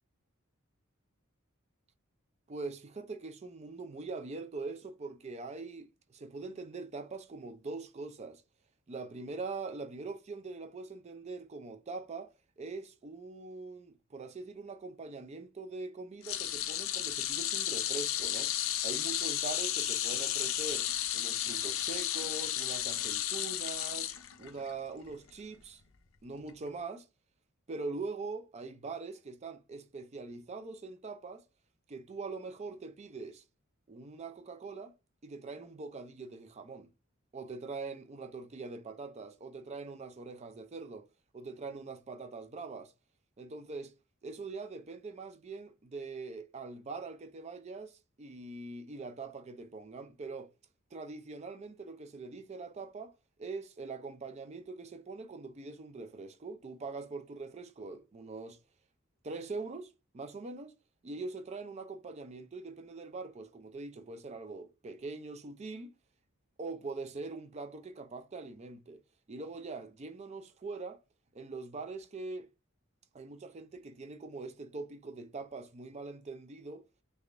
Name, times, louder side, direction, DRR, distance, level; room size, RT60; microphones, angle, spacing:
voice 1, 2.5-8.4 8.9-18.5 18.8-24.1 24.4-25.8 26.2-27.1 27.7-31.4 31.9-33.4 33.9-34.9 35.2-36.9 37.3-41.1 41.3-42.9 43.4-43.9 44.2-50.5 50.9-53.1 53.4-58.6 59.2-60.7 61.0-65.9 66.6-69.0 69.3-71.0 71.3-72.5 73.1-76.8, right 3 dB, 30° right, 0.4 m, -43 dB
sound 1, 16.2-24.7 25.1-25.3 26.5-26.6, left 12 dB, 70° left, 0.5 m, -33 dB
3.3 x 3.3 x 2.5 m
head